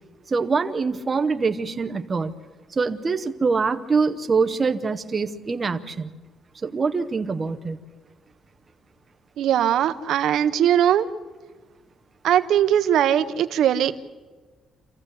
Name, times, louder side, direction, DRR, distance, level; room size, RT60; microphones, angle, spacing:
voice 1, 0.3-2.3 2.7-6.1 6.6-7.8, right 4 dB, 20° right, 7 dB, 0.9 m, -24 dB
voice 2, 9.4-11.1 12.2-14.0, right 10 dB, 65° right, 11 dB, 0.8 m, -20 dB
27.5 x 15.0 x 8.3 m, 1.4 s
cardioid pair, 175°, 0 cm